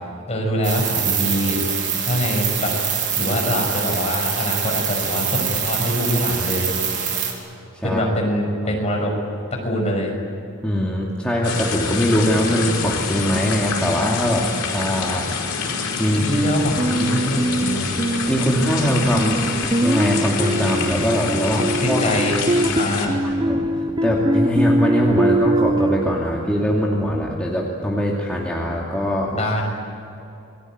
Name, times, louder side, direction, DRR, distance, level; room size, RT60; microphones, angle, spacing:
voice 1, 0.3-1.6 2.1-2.7 3.1-6.7 7.8-9.1 9.5-10.1 16.0-17.9 21.8-22.4 22.7-23.2 29.4-29.6, equal, 30° left, 0 dB, 6.1 m, -24 dB
sound 1, 0.6-7.3, right 7 dB, 50° right, 4.5 m, -24 dB
voice 2, 7.7-8.1 8.6-8.7 10.6-15.3 16.0-16.2 18.3-19.4 19.8-22.1 23.5-29.4, equal, 5° left, -3 dB, 2.4 m, -22 dB
sound 2, 11.4-23.1, left 5 dB, 90° left, 5.2 m, -26 dB
sound 3, 16.3-26.2, right 1 dB, 20° right, 0.6 m, -22 dB
28.5 x 21.0 x 9.3 m, 2.8 s
head